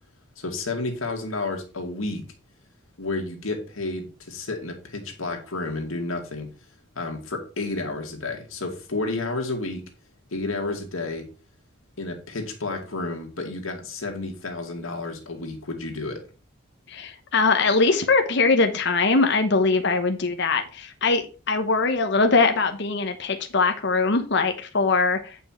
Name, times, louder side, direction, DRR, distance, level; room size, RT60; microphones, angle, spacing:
voice 1, 0.4-2.2 3.0-6.5 6.9-9.8 10.3-11.3 12.0-16.2, left 2 dB, 80° left, 3 dB, 2.3 m, -31 dB
voice 2, 16.9-25.4, left 3 dB, 55° left, 6 dB, 1.0 m, -22 dB
9.1 x 5.8 x 4.4 m, 0.34 s
head